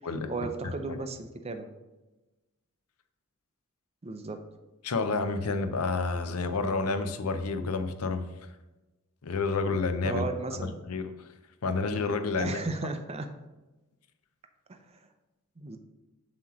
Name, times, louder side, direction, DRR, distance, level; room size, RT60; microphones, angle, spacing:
voice 1, 0.3-1.7 4.0-4.4 10.0-10.7 12.4-13.3 14.7-15.0 15.6-15.8, right 3 dB, 30° right, 7 dB, 0.5 m, -35 dB
voice 2, 4.8-8.3 9.2-10.2 10.8-11.1 11.6-12.6, left 3 dB, 80° left, 9 dB, 0.6 m, -29 dB
7.3 x 3.0 x 6.1 m, 1.1 s
head